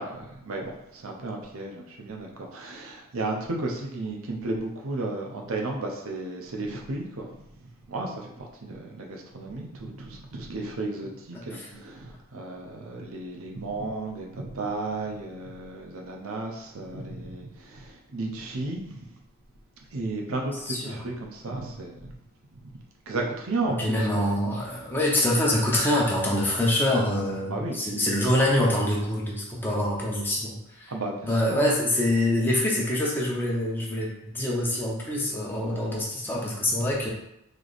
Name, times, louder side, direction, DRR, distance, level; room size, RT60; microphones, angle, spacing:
voice 1, 0.0-7.5 7.9-19.0 19.9-22.1 22.5-22.6 23.1-24.3 27.5-27.8 30.9-31.7 35.6-35.9, right 2 dB, 65° right, 1 dB, 0.7 m, -34 dB
voice 2, 20.3-21.0 23.6-30.9 31.2-37.1, left 1 dB, 10° left, -4 dB, 0.8 m, -25 dB
3.3 x 2.9 x 4.0 m, 0.81 s
head